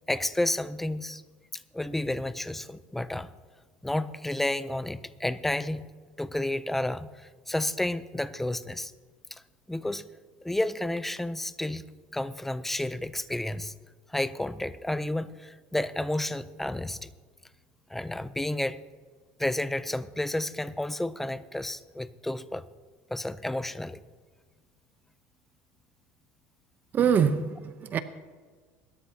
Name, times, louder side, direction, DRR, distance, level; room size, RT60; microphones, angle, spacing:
voice 1, 0.1-1.2 1.5-3.3 3.8-5.9 6.2-8.9 9.3-9.4 9.7-10.0 10.4-11.8 12.1-13.7 14.1-17.1 17.9-18.8 19.4-22.7 23.1-24.0, left 1 dB, 5° left, 14 dB, 0.5 m, -31 dB
voice 2, 26.9-28.0, right 7 dB, 35° right, 11 dB, 0.7 m, -24 dB
22.5 x 12.5 x 2.8 m, 1.5 s
supercardioid pair, 120°, 5 cm